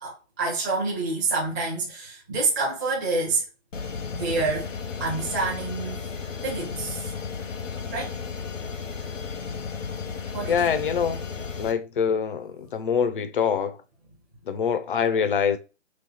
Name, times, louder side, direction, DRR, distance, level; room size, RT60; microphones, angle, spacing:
voice 1, 0.0-3.4 4.1-4.7 5.0-6.2 6.4-7.1 7.9-8.1 10.3-10.7, right 3 dB, 15° right, 0.7 m, -27 dB
sound 1, 3.7-11.7, left 6 dB, 85° left, 1.1 m, -34 dB
voice 2, 10.5-11.2 11.6-13.7 14.5-15.6, left 7 dB, 45° left, 0.5 m, -24 dB
3.2 x 3.1 x 3.9 m
hypercardioid pair, 160°, 37 cm